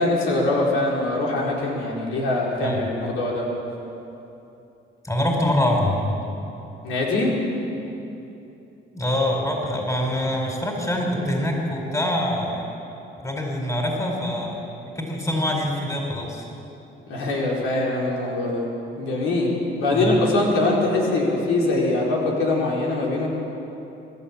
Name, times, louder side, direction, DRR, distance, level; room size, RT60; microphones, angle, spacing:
voice 1, 0.0-3.5 6.8-7.4 17.1-18.7 19.0-23.3, left 2 dB, 85° left, -3 dB, 4.4 m, -23 dB
voice 2, 2.6-2.9 5.0-6.2 8.9-12.7 13.2-14.6 14.9-16.5 19.9-20.2, left 1 dB, 15° left, 0 dB, 4.6 m, -24 dB
24.0 x 12.5 x 8.8 m, 2.9 s
cardioid pair, 90°, 20 cm